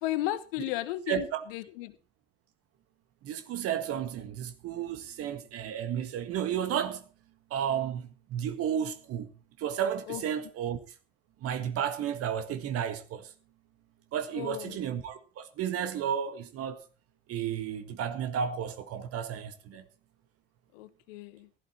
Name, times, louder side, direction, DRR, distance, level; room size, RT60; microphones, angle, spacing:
voice 1, 0.0-2.0 10.1-10.2 14.3-14.8 20.7-21.5, left 15 dB, 60° left, 1.1 m, -34 dB
voice 2, 1.1-1.4 3.2-7.0 7.5-9.3 9.6-10.8 11.4-13.3 14.1-16.8 17.3-19.8, right 9 dB, 45° right, 1.8 m, -32 dB
15.5 x 11.5 x 4.3 m
figure-of-eight pair, 60°, 32 cm